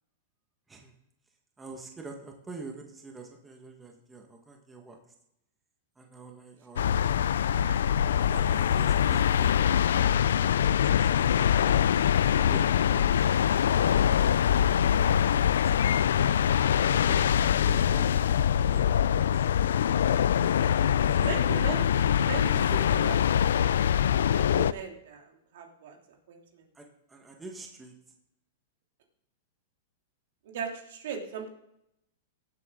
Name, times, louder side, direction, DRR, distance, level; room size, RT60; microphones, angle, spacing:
voice 1, 1.6-5.0 6.0-7.7 8.3-9.6 10.3-11.7 12.3-13.1 13.4-14.8 15.3-16.2 16.8-18.3 18.6-19.7 21.0-21.9 26.7-27.9, right 3 dB, 10° right, 2 dB, 1.6 m, -47 dB
sound 1, 6.8-24.7, left 9 dB, 85° left, 0.3 m, -24 dB
voice 2, 7.7-8.6 21.2-23.8 24.3-26.0 26.3-26.7 30.4-31.5, right 6 dB, 70° right, 2 dB, 2.8 m, -39 dB
17.5 x 8.1 x 3.8 m, 0.80 s
supercardioid pair, 145°, 0 cm